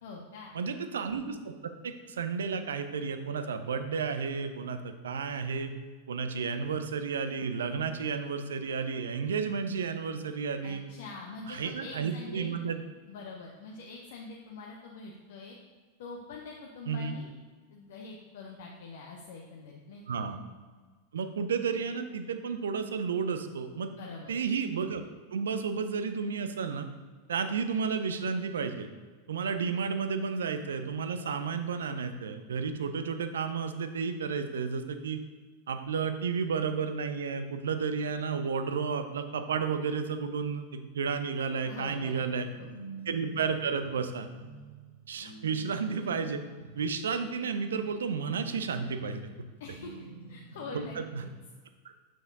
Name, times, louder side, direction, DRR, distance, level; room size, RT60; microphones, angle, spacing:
voice 1, 0.0-0.5 10.6-12.5 13.1-15.6 16.0-17.3 17.7-20.2 24.0-24.3 41.6-42.8 49.6-49.9 50.3-51.0 51.2-51.3, left 4 dB, 55° left, -1 dB, 0.7 m, -44 dB
voice 2, 0.5-5.7 6.1-10.8 11.5-12.8 16.9-17.2 20.1-20.4 21.1-23.9 24.3-25.0 25.3-26.9 27.3-28.9 29.3-35.2 35.7-42.5 43.1-44.3 45.1-46.4 46.8-49.2 50.7-51.2, right 5 dB, 65° right, 9 dB, 0.5 m, -32 dB
sound 1, 42.2-51.0, right 2 dB, 70° left, 1.0 m, -48 dB
6.9 x 6.0 x 2.7 m, 1.4 s
figure-of-eight pair, 90°, 0 cm